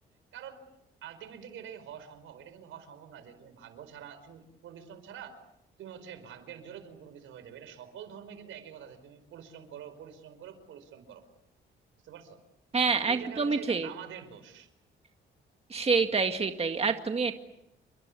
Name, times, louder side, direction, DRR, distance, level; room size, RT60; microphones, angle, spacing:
voice 1, 0.3-0.6 1.0-5.4 5.8-11.2 12.0-12.4 12.9-14.7, right 8 dB, 80° right, 11 dB, 4.9 m, -46 dB
voice 2, 12.7-13.9 15.7-17.3, right 4 dB, 30° right, 6 dB, 2.1 m, -27 dB
29.5 x 23.5 x 8.5 m, 0.85 s
cardioid pair, 90°, 20 cm